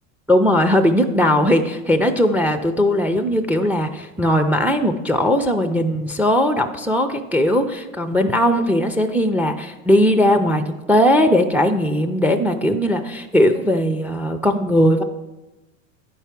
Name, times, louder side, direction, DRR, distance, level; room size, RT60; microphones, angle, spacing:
voice 1, 0.3-15.0, equal, 5° right, 6 dB, 0.4 m, -18 dB
9.7 x 4.7 x 5.9 m, 1.1 s
hypercardioid pair, 100°, 41 cm